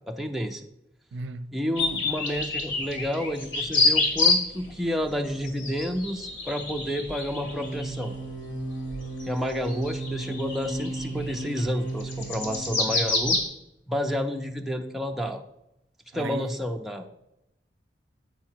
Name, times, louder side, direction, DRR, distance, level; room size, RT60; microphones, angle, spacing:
voice 1, 0.1-0.7 1.5-8.1 9.3-13.4 13.9-15.4 16.1-17.1, equal, ahead, 0.4 m, -30 dB
voice 2, 1.1-1.5 16.1-16.6, right 3 dB, 75° right, 0.4 m, -35 dB
sound 1, 1.8-4.7 5.0-13.5, left 3 dB, 85° left, 1.6 m, -28 dB
sound 2, 7.4-13.1, right 2 dB, 65° left, 3.0 m, -35 dB
7.9 x 4.7 x 4.4 m
head